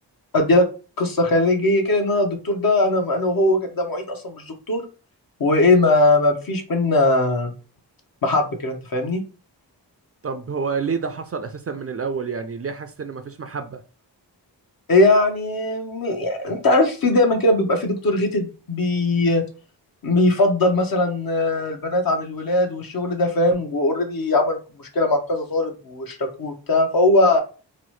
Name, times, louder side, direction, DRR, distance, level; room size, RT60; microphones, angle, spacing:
voice 1, 0.3-0.6 1.0-4.8 5.4-7.5 8.2-9.2 14.9-19.4 20.0-27.4, left 2 dB, 55° left, 0.8 m, -20 dB
voice 2, 10.2-13.8, right 5 dB, 35° right, 0.4 m, -28 dB
2.9 x 2.0 x 3.1 m
cardioid pair, 40°, 42 cm